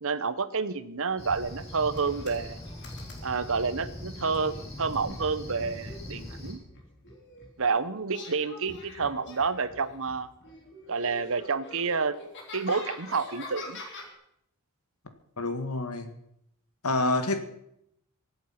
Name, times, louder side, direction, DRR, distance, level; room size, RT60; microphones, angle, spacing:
voice 1, 0.0-2.6 3.2-6.6 7.6-10.3 10.9-12.1 12.5-13.8, right 4 dB, 65° right, 1.0 m, -29 dB
Cricket, 1.2-6.5, left 1 dB, 30° left, 6.5 m, -41 dB
sound 1, 1.9-3.7 4.3-7.6 8.1-10.2 10.4-14.1, left 2 dB, 55° left, 3.4 m, -45 dB
voice 2, 15.4-16.1 16.8-17.4, left 2 dB, 80° left, 2.0 m, -27 dB
24.0 x 8.2 x 5.9 m
head